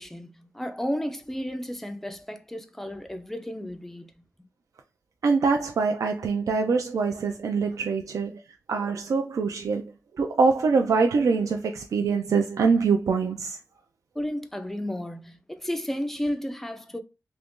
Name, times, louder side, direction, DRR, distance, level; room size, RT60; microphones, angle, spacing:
voice 1, 0.0-4.1 14.2-17.0, equal, 5° left, 0.4 m, -33 dB
voice 2, 5.2-8.4 8.7-9.9 10.2-13.6, right 4 dB, 65° right, 0.3 m, -24 dB
2.9 x 2.5 x 3.5 m
wide cardioid pair, 170°, 6 cm